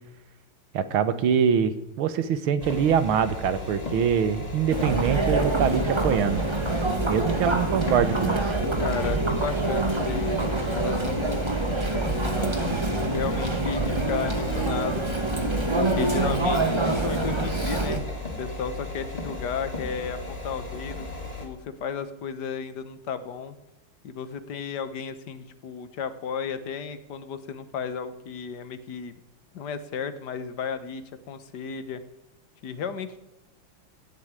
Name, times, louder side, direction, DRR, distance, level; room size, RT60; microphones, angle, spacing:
voice 1, 0.7-6.4 7.1-8.6, right 7 dB, 80° right, 13 dB, 2.0 m, -24 dB
sound 1, 2.6-21.5, left 2 dB, 20° left, 2.8 m, -36 dB
Chatter, 4.7-18.0, right 2 dB, 15° right, 1.4 m, -26 dB
voice 2, 8.8-15.0 15.7-18.1 18.4-21.1 21.4-23.6 24.0-29.2 29.5-32.0 32.6-33.2, left 6 dB, 55° left, 12 dB, 1.6 m, -34 dB
17.0 x 8.2 x 9.6 m, 0.96 s
omnidirectional pair, 2.3 m